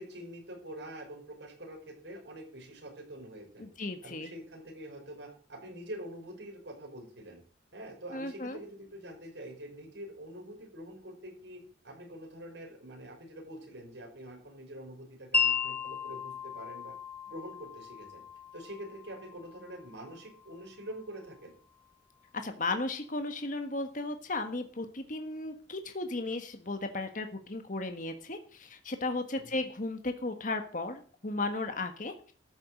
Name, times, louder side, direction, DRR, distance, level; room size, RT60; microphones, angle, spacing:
voice 1, 0.0-3.7 4.0-7.4 7.7-16.9 17.3-18.2 18.5-21.5 29.3-29.6, right 1 dB, 75° right, 2 dB, 5.4 m, -45 dB
voice 2, 3.6-4.3 8.1-8.6 22.4-32.1, left 2 dB, 45° left, 7 dB, 1.4 m, -35 dB
Wind chime, 15.3-21.4, left 5 dB, 10° left, 2.0 m, -36 dB
13.0 x 7.3 x 7.7 m, 0.42 s
head